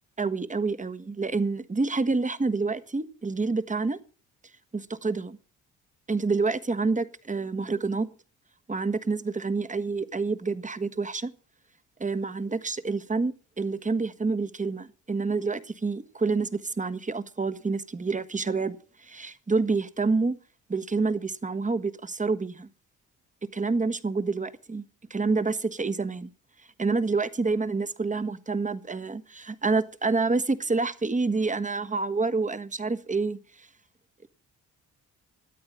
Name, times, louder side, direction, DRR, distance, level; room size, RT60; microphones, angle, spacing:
voice 1, 0.2-4.0 4.7-5.4 6.1-8.1 8.7-11.3 12.0-18.8 19.0-20.3 20.7-22.7 23.5-24.8 25.1-26.3 26.8-33.4, right 3 dB, 20° right, 1.5 m, -28 dB
13.5 x 8.7 x 7.5 m
supercardioid pair, 70°, 34 cm